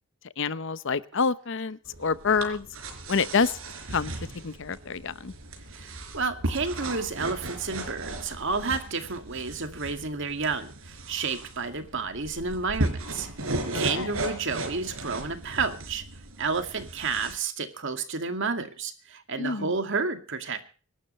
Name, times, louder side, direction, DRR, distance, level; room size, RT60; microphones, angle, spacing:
voice 1, 0.4-2.7 3.1-3.6 3.9-4.1 4.4-5.3 13.7-14.1 19.4-19.7, left 5 dB, 65° left, 16 dB, 0.8 m, -27 dB
Scooping Powder, 1.8-17.3, right 2 dB, 80° right, 4.2 m, -36 dB
voice 2, 5.7-13.3 13.7-16.0 16.4-20.7, right 4 dB, 65° right, 7 dB, 2.2 m, -31 dB
25.0 x 12.0 x 3.2 m, 0.38 s
head